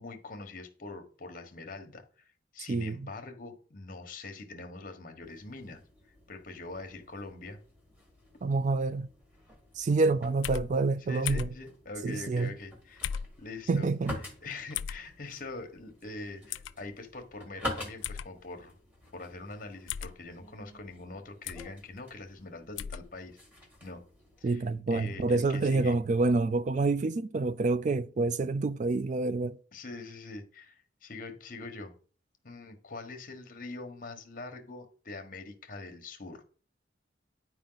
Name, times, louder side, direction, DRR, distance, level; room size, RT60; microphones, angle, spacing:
voice 1, 0.0-5.8 6.3-7.6 11.1-13.9 14.4-18.7 19.1-23.4 23.8-24.0 24.4-26.0 29.7-31.9 32.4-36.4, left 3 dB, 45° left, 1.2 m, -43 dB
sound 1, 5.2-24.8, left 1 dB, 10° right, 1.9 m, -47 dB
voice 2, 8.4-9.1 9.8-11.5 12.0-12.5 13.7-14.2 24.4-29.6, right 3 dB, 40° right, 0.3 m, -27 dB
sound 2, 10.4-10.7 11.3-11.6 13.0-13.3 14.7-15.0 16.5-16.7 18.0-18.3 19.9-20.1 21.5-21.7 22.8-23.0, left 8 dB, 85° left, 0.3 m, -35 dB
10.0 x 4.8 x 3.9 m
head